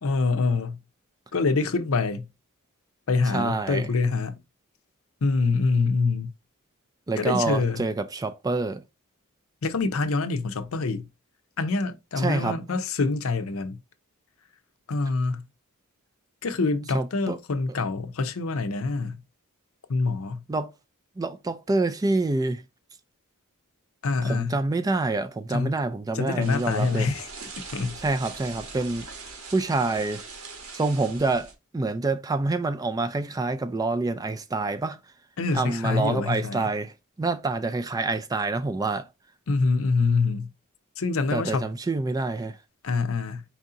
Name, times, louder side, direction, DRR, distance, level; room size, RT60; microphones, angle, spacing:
voice 1, 0.0-0.8 1.3-2.3 3.1-4.4 5.2-6.3 7.2-7.8 9.6-11.1 11.6-13.8 14.9-15.4 16.4-19.2 19.9-20.4 24.0-24.6 25.5-25.7 26.1-27.3 27.7-28.0 35.4-36.7 39.5-40.5 41.0-41.7 42.8-43.4, left 3 dB, 70° left, 0.6 m, -25 dB
voice 2, 3.3-3.8 7.1-8.8 12.2-12.6 16.9-17.4 20.5-20.7 21.2-22.6 24.2-27.1 28.0-29.0 29.5-30.2 30.8-35.0 35.5-36.9 37.2-39.0 41.3-42.5, right 3 dB, 15° right, 0.3 m, -27 dB
sound 1, 26.4-31.5, right 4 dB, 80° right, 1.2 m, -41 dB
4.5 x 2.8 x 3.7 m
head